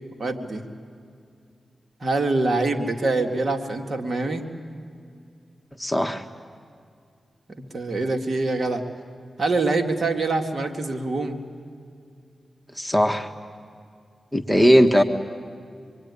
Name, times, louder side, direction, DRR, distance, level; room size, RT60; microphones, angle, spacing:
voice 1, 0.2-0.6 2.0-4.4 7.6-8.8 9.4-11.4 14.5-15.0, right 3 dB, 60° right, 4 dB, 2.3 m, -25 dB
voice 2, 5.8-6.2 12.8-13.3 14.3-15.0, equal, 5° left, 6 dB, 1.6 m, -18 dB
25.5 x 23.5 x 9.9 m, 2.3 s
cardioid pair, 45°, 0 cm